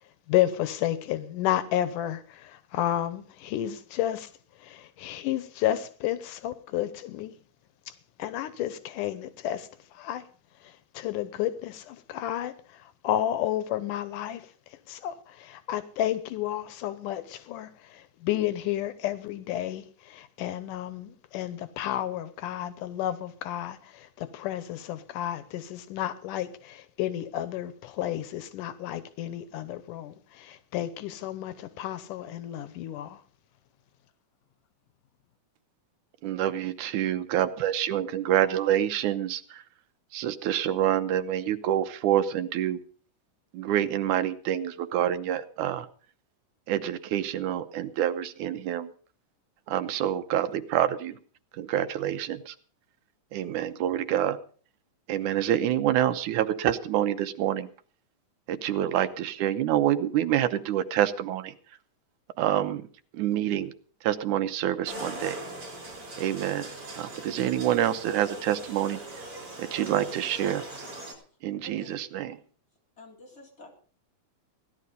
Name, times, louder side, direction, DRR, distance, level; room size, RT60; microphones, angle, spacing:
voice 1, 0.3-4.3 4.6-7.4 8.2-9.7 10.0-10.2 10.9-12.5 13.0-14.4 14.9-33.2, left 12 dB, 90° left, 2.5 m, -31 dB
voice 2, 36.2-39.6 40.1-42.8 43.5-45.9 46.7-48.9 49.7-51.2 51.6-52.5 53.3-54.4 55.1-57.7 58.5-61.5 62.4-62.8 63.1-63.7 64.0-65.4 66.2-66.7 66.9-69.0 69.6-70.6 71.4-72.4, right 11 dB, 80° right, 2.4 m, -27 dB
sound 1, 64.9-71.1, right 1 dB, 45° right, 5.3 m, -41 dB
voice 3, 71.6-71.9 73.0-73.7, left 1 dB, 20° left, 4.0 m, -49 dB
16.5 x 11.5 x 5.2 m
omnidirectional pair, 3.5 m